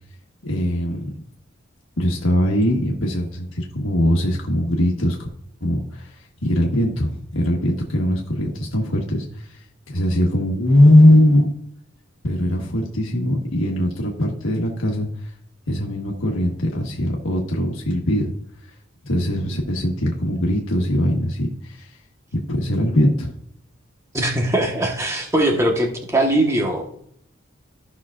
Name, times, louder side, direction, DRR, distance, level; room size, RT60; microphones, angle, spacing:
voice 1, 0.4-1.2 2.0-5.3 5.6-11.5 12.2-15.3 15.7-18.3 18.6-18.7 19.0-22.0 22.3-23.3, left 1 dB, 90° left, -1 dB, 1.3 m, -20 dB
voice 2, 24.1-26.9, right 1 dB, 15° right, 2 dB, 1.2 m, -21 dB
14.5 x 5.7 x 2.4 m, 0.68 s
head